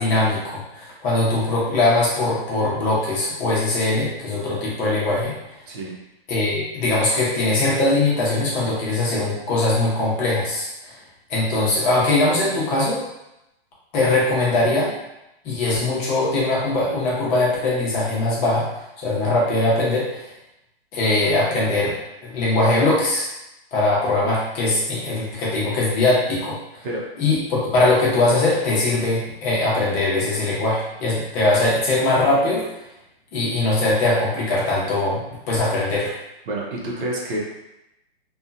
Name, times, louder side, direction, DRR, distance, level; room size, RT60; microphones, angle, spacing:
voice 1, 0.0-5.3 6.3-11.0 11.3-13.0 13.9-14.9 15.4-18.6 19.0-20.3 20.9-21.9 22.2-23.3 23.7-26.9 27.2-32.6 33.3-35.2 35.5-36.1, left 2 dB, 25° left, -6 dB, 0.8 m, -21 dB
voice 2, 36.5-37.4, right 1 dB, 55° right, -3 dB, 0.8 m, -28 dB
2.7 x 2.3 x 2.5 m, 0.90 s
hypercardioid pair, 140°, 31 cm